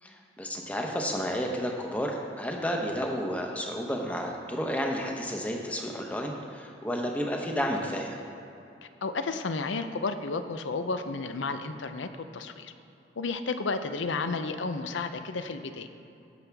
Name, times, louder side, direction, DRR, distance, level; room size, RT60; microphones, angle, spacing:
voice 1, 0.0-8.2, equal, 10° left, 1 dB, 0.8 m, -31 dB
voice 2, 9.0-12.7 13.2-15.9, left 3 dB, 85° left, 9 dB, 0.6 m, -32 dB
15.5 x 7.0 x 3.5 m, 2.8 s
head